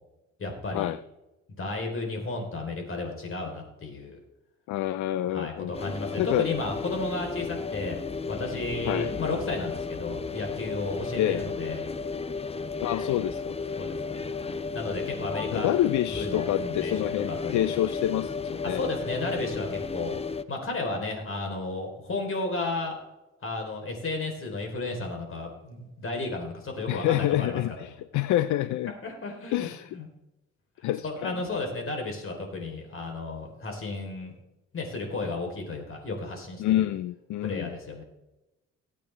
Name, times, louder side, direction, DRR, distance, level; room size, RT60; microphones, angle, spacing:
voice 1, 0.4-0.9 1.6-4.2 5.3-8.0 8.3-11.8 13.8-14.4 14.7-15.7 16.1-17.6 18.6-20.2 20.5-22.9 23.4-27.6 28.9-30.1 31.0-34.3 34.7-36.9 37.4-38.0, left 2 dB, 45° left, 2 dB, 3.6 m, -33 dB
voice 2, 4.7-5.7 6.2-6.5 8.9-9.1 11.2-11.4 12.8-13.5 15.5-18.8 26.9-28.9 29.5-29.9 30.8-31.4 36.6-37.8, left 13 dB, 70° left, 15 dB, 0.5 m, -27 dB
sound 1, 5.7-20.4, left 4 dB, 20° left, 0.6 m, -33 dB
17.5 x 8.5 x 3.3 m, 0.99 s
cardioid pair, 90°, 30 cm